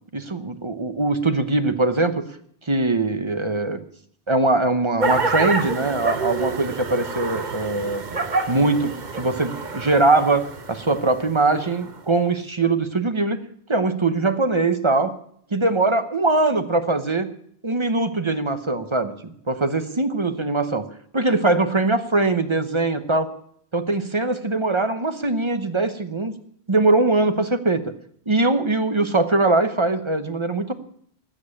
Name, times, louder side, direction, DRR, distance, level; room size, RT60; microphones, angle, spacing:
voice 1, 0.1-2.2 2.7-3.8 4.3-8.0 8.5-13.4 13.7-15.1 15.5-17.3 17.6-19.1 19.5-20.8 21.1-23.3 23.7-26.3 26.7-27.8 28.3-30.7, right 2 dB, 30° right, 10 dB, 0.9 m, -21 dB
sound 1, 5.0-12.0, right 3 dB, 45° right, 1.1 m, -28 dB
13.0 x 7.6 x 9.8 m, 0.67 s
omnidirectional pair, 1.1 m